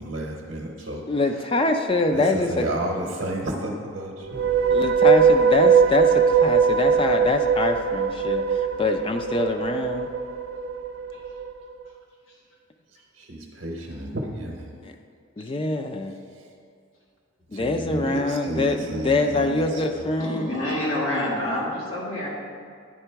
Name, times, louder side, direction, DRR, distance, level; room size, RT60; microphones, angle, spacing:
voice 1, 0.0-1.0 2.1-4.6 13.1-14.8 16.3-16.5 17.5-20.1, right 1 dB, 65° right, -1 dB, 0.8 m, -32 dB
voice 2, 1.1-2.7 4.7-10.1 14.8-14.9 15.4-16.1 17.5-20.5, left 2 dB, 25° left, 5 dB, 0.4 m, -24 dB
sound 1, 4.2-11.5, right 6 dB, 90° right, 0.4 m, -20 dB
voice 3, 20.2-22.3, left 1 dB, 90° left, -5 dB, 1.8 m, -27 dB
10.0 x 3.8 x 4.5 m, 2.2 s
head